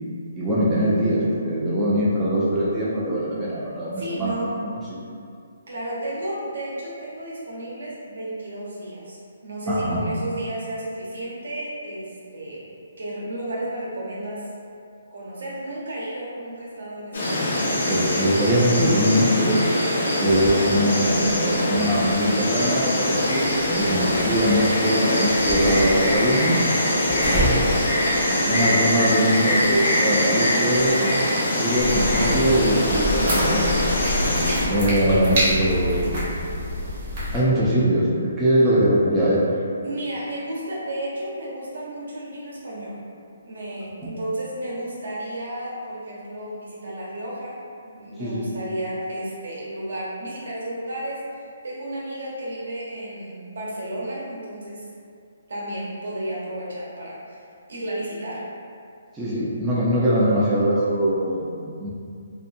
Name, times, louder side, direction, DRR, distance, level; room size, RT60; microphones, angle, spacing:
voice 1, 0.3-4.3 4.6-4.7 9.7-10.0 17.9-19.9 20.2-26.6 27.2-27.5 28.3-31.1 31.4-33.8 34.7-36.2 37.3-39.4 48.2-48.5 59.1-61.9, equal, 5° right, -10 dB, 0.3 m, -22 dB
voice 2, 4.0-4.5 5.7-12.7 13.0-14.5 15.1-18.0 27.1-27.6 35.1-35.2 38.6-38.8 39.8-43.0 43.4-47.6 47.8-54.8 55.5-57.4 57.7-58.5, right 1 dB, 75° right, -6 dB, 0.8 m, -33 dB
Insect, 17.1-34.7, left 1 dB, 80° left, 0.8 m, -23 dB
sound 1, 20.3-36.6, equal, 30° left, 0.6 m, -35 dB
sound 2, 31.8-37.4, equal, 35° right, 0.8 m, -26 dB
2.6 x 2.3 x 2.5 m, 2.3 s
hypercardioid pair, 165°, 0 cm